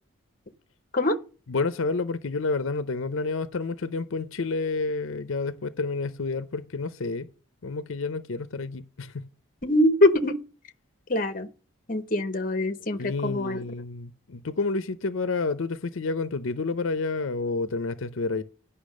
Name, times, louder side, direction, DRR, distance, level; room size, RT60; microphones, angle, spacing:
voice 1, 1.5-7.3 7.6-9.3 13.0-18.4, left 3 dB, 70° left, 0.6 m, -29 dB
voice 2, 9.6-10.4 11.1-11.5 11.9-13.6, left 1 dB, 40° left, 0.9 m, -23 dB
10.5 x 5.6 x 6.4 m
head